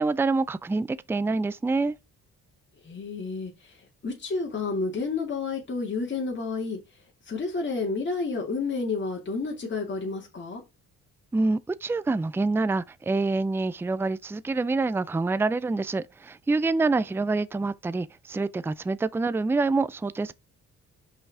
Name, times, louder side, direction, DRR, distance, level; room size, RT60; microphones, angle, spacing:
voice 1, 0.0-1.9 11.3-20.3, right 3 dB, 10° right, 0.4 m, -26 dB
voice 2, 2.8-6.8 7.2-10.6, left 4 dB, 35° left, 2.6 m, -30 dB
6.1 x 5.5 x 4.7 m
cardioid pair, 90°, 30 cm